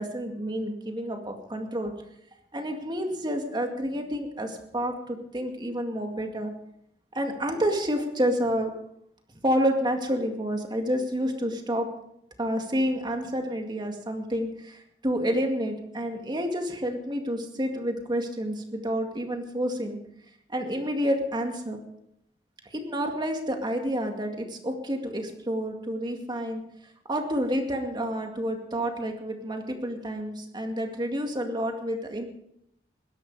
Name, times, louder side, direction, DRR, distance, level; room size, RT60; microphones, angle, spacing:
voice 1, 0.0-1.9 2.5-6.5 7.1-8.7 9.4-11.9 12.4-20.0 20.5-21.8 22.7-26.6 27.1-32.3, equal, 25° right, 4 dB, 2.2 m, -29 dB
20.5 x 11.0 x 4.9 m, 0.75 s
head